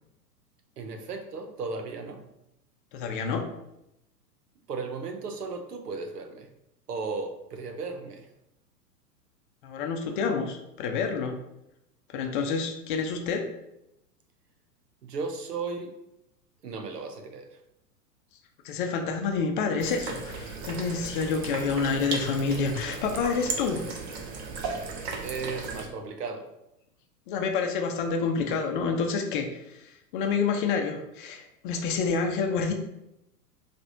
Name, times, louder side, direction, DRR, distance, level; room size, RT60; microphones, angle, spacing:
voice 1, 0.8-2.3 4.7-6.5 6.9-8.3 15.0-15.9 16.6-17.5 25.2-26.5, right 4 dB, 75° right, 6 dB, 0.8 m, -35 dB
voice 2, 2.9-3.4 9.6-11.4 12.1-13.4 18.6-23.8 27.3-32.7, left 5 dB, 35° left, 3 dB, 0.6 m, -28 dB
sound 1, 19.8-25.9, right 4 dB, 40° right, 0.9 m, -35 dB
5.8 x 3.3 x 2.6 m, 0.85 s
figure-of-eight pair, 105°, 48 cm